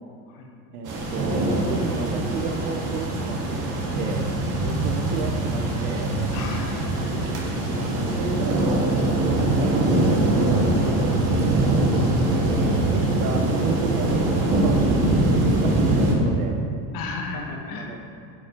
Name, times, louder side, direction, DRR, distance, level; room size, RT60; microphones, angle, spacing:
voice 1, 0.7-4.3 4.6-6.1 7.7-9.0 9.5-12.8 13.2-16.6 17.7-18.0, right 5 dB, 85° right, 3 dB, 0.8 m, -33 dB
sound 1, 0.9-16.1, right 1 dB, 40° right, 1.9 m, -22 dB
voice 2, 6.3-7.2 16.9-17.9, left 3 dB, 50° left, 1 dB, 1.3 m, -34 dB
8.4 x 5.0 x 4.4 m, 2.5 s
supercardioid pair, 100°, 45 cm